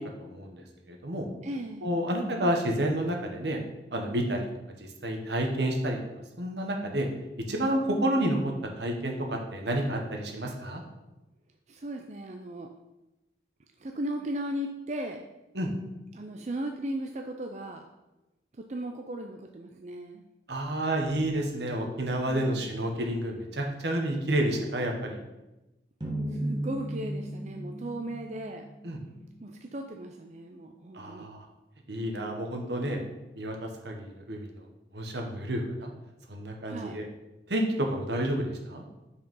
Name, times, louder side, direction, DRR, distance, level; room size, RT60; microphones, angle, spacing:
voice 1, 0.2-1.3 1.8-3.6 3.9-4.4 4.8-6.0 6.4-7.1 7.5-8.5 8.8-10.8 15.5-15.7 20.5-25.2 28.8-29.0 30.9-31.4 31.9-33.0 33.4-34.7 34.9-35.9 36.3-37.0 37.5-38.8, right 1 dB, 75° right, 2 dB, 1.3 m, -30 dB
voice 2, 1.4-1.9 11.7-12.7 13.8-15.3 16.1-17.9 18.6-20.3 26.3-28.6 29.4-31.3 36.7-37.0, right 1 dB, 40° right, 3 dB, 0.4 m, -37 dB
sound 1, 26.0-29.2, right 1 dB, 25° right, 1.3 m, -35 dB
6.1 x 4.8 x 5.5 m, 0.97 s
head